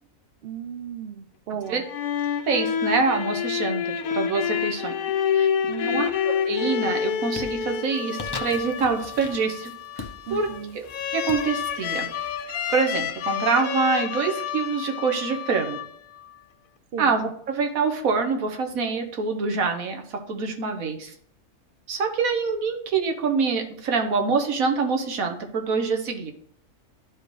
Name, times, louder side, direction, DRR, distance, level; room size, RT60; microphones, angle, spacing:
voice 1, 0.4-1.8 5.7-6.1 10.3-10.8 16.9-17.1, right 8 dB, 60° right, 9 dB, 0.7 m, -35 dB
sound 1, 1.7-16.3, left 8 dB, 80° left, 1.1 m, -28 dB
voice 2, 2.5-4.9 5.3-5.5 5.8-9.7 10.0-10.1 10.3-10.5 10.7-10.9 11.1-12.1 12.7-15.8 17.0-21.1 21.9-26.3, right 5 dB, 80° right, 4 dB, 1.5 m, -25 dB
sound 2, 6.0-6.5 6.9-13.5, left 3 dB, 30° left, 0.5 m, -42 dB
11.5 x 4.6 x 3.2 m, 0.63 s
omnidirectional pair, 1.4 m